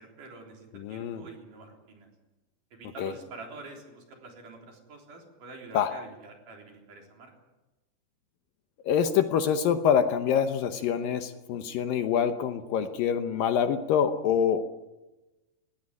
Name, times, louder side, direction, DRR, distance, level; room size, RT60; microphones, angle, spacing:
voice 1, 0.0-2.1 2.7-7.3, right 3 dB, 55° right, 1 dB, 5.1 m, -47 dB
voice 2, 0.7-1.2 3.0-3.1 5.7-5.9 8.8-14.7, left 8 dB, 70° left, 8 dB, 2.5 m, -26 dB
20.5 x 16.0 x 9.9 m, 1.1 s
omnidirectional pair, 4.5 m